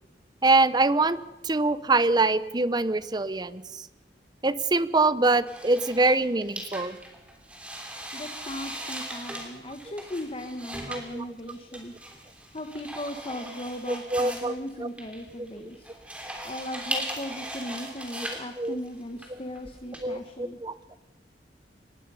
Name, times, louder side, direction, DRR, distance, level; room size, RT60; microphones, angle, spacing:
voice 1, 0.4-1.2 1.4-3.6 4.4-7.0 10.9-11.2 13.9-14.5 14.8-14.9 18.6-18.8 20.0-20.2 20.6-20.7, right 3 dB, 25° right, 15 dB, 0.7 m, -24 dB
sound 1, 5.5-20.0, right 1 dB, 5° right, 3.2 m, -39 dB
voice 2, 8.1-11.9 12.5-15.9 16.4-20.6, left 1 dB, 30° left, 6 dB, 1.2 m, -37 dB
24.5 x 20.0 x 5.6 m, 1.1 s
head